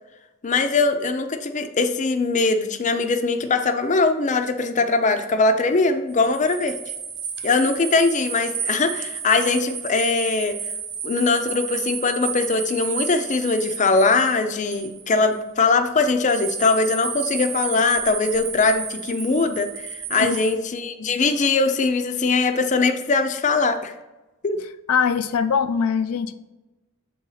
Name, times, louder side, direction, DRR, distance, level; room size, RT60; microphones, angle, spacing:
voice 1, 0.4-6.7 7.4-10.6 11.0-23.9 24.4-24.6, left 3 dB, 35° left, 0.5 m, -21 dB
sound 1, 6.1-15.3 16.2-20.6, right 6 dB, 60° right, 0.9 m, -32 dB
voice 2, 24.9-26.3, left 6 dB, 85° left, 0.4 m, -22 dB
7.1 x 4.2 x 3.9 m
head